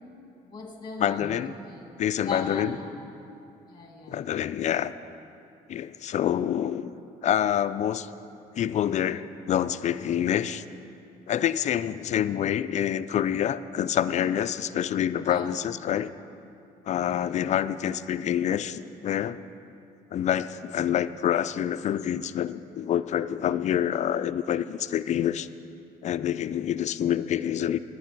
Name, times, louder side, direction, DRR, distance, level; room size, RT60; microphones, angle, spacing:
voice 1, 0.5-3.0 3.7-4.2 15.3-15.5 17.1-17.4, left 3 dB, 25° left, 2 dB, 1.8 m, -38 dB
voice 2, 1.0-1.5 2.0-2.8 4.1-4.9 5.7-6.9 7.2-8.1 8.6-10.6 11.3-16.1 16.9-19.4 20.1-25.5 26.0-27.8, left 10 dB, 45° left, 14 dB, 0.4 m, -27 dB
10.5 x 9.5 x 5.9 m, 2.7 s
cardioid pair, 110°, 17 cm